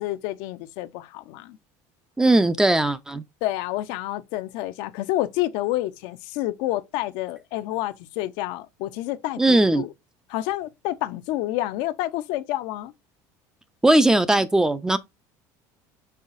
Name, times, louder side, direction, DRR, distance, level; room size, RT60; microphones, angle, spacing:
voice 1, 0.0-1.6 3.4-9.9 10.3-12.9, left 15 dB, 70° left, 0.5 m, -29 dB
voice 2, 2.2-3.2 9.4-9.8 13.8-15.0, right 2 dB, 5° right, 0.4 m, -19 dB
5.5 x 3.9 x 2.5 m
cardioid pair, 140°, 8 cm